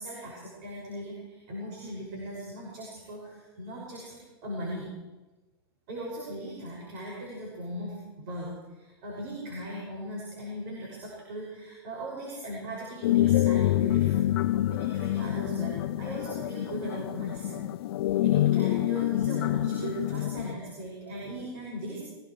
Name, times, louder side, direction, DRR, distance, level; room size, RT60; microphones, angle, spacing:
voice 1, 0.0-4.9 5.9-14.3 14.7-17.6 18.1-22.0, right 1 dB, 50° right, -4 dB, 6.5 m, -38 dB
sound 1, 13.0-20.5, left 14 dB, 65° left, 0.5 m, -26 dB
23.0 x 19.0 x 3.3 m, 1.2 s
hypercardioid pair, 120°, 13 cm